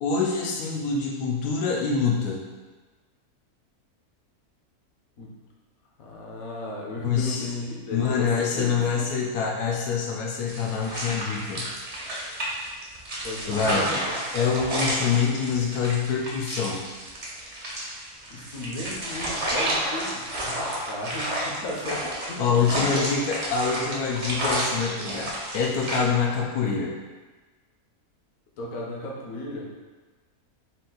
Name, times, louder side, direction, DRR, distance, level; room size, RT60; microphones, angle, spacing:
voice 1, 0.0-2.4 7.0-7.5 7.9-11.7 13.5-13.9 14.3-16.8 22.4-27.0, left 5 dB, 90° left, -2 dB, 1.1 m, -25 dB
voice 2, 6.0-9.1 13.2-14.2 18.3-23.2 28.6-29.7, left 2 dB, 70° left, -3 dB, 1.2 m, -35 dB
sound 1, 10.5-26.0, right 1 dB, 40° right, 0.8 m, -31 dB
4.2 x 2.5 x 3.8 m, 1.3 s
omnidirectional pair, 1.6 m